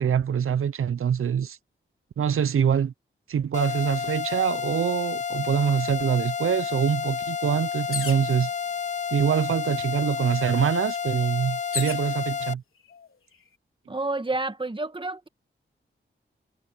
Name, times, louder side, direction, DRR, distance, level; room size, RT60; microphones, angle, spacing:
voice 1, 0.0-1.6 2.2-2.9 3.3-8.5 9.1-12.6, right 8 dB, 80° right, 0.6 m, -24 dB
sound 1, 3.5-12.5, left 7 dB, 35° left, 0.4 m, -30 dB
sound 2, 7.9-8.4 9.3-9.4 9.7-12.1 12.9-13.4, left 6 dB, 80° left, 3.8 m, -35 dB
voice 2, 13.9-15.3, right 2 dB, 25° right, 1.5 m, -29 dB
cardioid pair, 65°, 21 cm